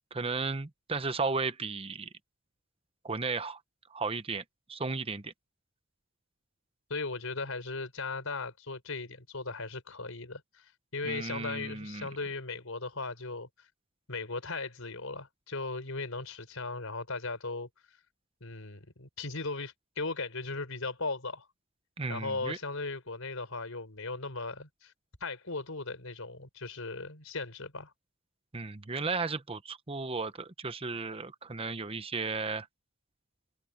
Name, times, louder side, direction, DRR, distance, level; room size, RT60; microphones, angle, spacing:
voice 1, 0.1-2.1 3.0-3.6 3.9-4.4 4.7-5.3 11.0-12.1 22.0-22.6 28.5-32.7, right 4 dB, 25° right, 0.9 m, -34 dB
voice 2, 6.9-10.6 10.9-13.7 14.1-17.7 18.4-21.5 22.1-24.9 25.2-27.9, left 3 dB, 80° left, 4.3 m, -37 dB
head